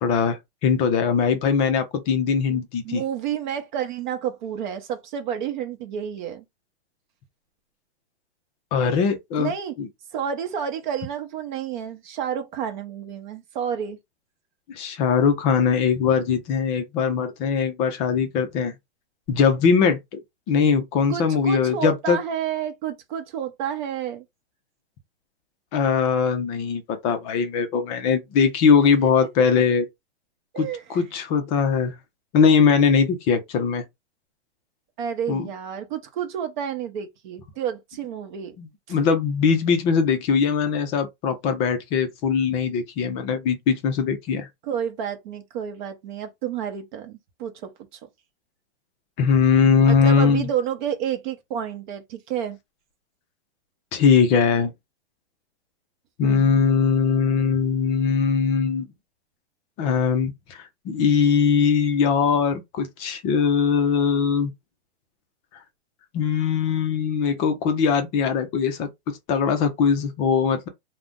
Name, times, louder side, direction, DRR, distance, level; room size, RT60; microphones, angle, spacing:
voice 1, 0.0-3.0 8.7-9.5 9.8-9.9 14.7-18.7 19.3-20.2 20.5-22.2 25.7-29.8 30.6-32.0 32.3-33.8 35.3-35.5 38.6-44.5 49.2-50.5 53.9-54.7 56.2-58.9 59.8-64.5 66.1-70.7, left 6 dB, 20° left, 0.4 m, -21 dB
voice 2, 2.5-6.4 9.4-9.8 10.1-14.0 21.1-24.2 30.5-31.0 35.0-38.6 44.6-47.7 49.9-52.6 56.2-56.6, right 8 dB, 45° right, 0.7 m, -30 dB
2.5 x 2.1 x 3.5 m
hypercardioid pair, 140°, 33 cm